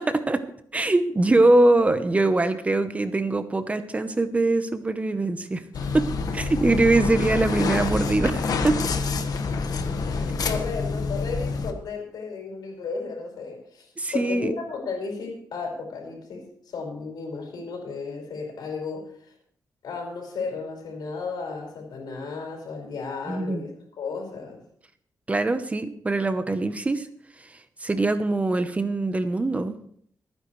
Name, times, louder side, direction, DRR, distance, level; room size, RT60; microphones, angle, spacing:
voice 1, 0.7-5.6 5.9-6.1 6.3-8.8 14.0-14.6 23.3-23.6 25.3-27.1 27.8-29.7, right 2 dB, 20° right, 10 dB, 0.9 m, -22 dB
sound 1, 5.7-11.7, left 4 dB, 65° left, 1.4 m, -27 dB
voice 2, 10.1-19.1 19.8-24.6, left 4 dB, 85° left, 1 dB, 5.2 m, -34 dB
27.0 x 9.8 x 3.2 m, 0.63 s
wide cardioid pair, 145°, 7 cm